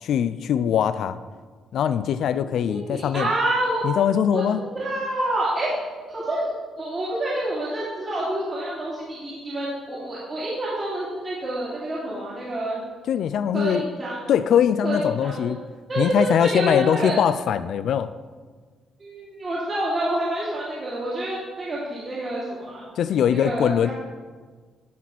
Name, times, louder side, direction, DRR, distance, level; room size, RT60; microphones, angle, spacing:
voice 1, 0.0-1.2 1.7-3.3 3.8-4.6 13.1-13.9 14.3-15.6 16.0-18.1 23.0-23.9, left 9 dB, 70° left, 13 dB, 0.3 m, -22 dB
voice 2, 2.7-3.8 4.3-4.4 4.7-5.7 6.1-6.5 6.8-12.8 13.5-14.3 14.8-15.5 15.9-17.2 19.0-22.8 23.3-23.9, right 1 dB, 40° right, -9 dB, 2.8 m, -28 dB
12.5 x 4.2 x 6.0 m, 1.5 s
cardioid pair, 90°, 0 cm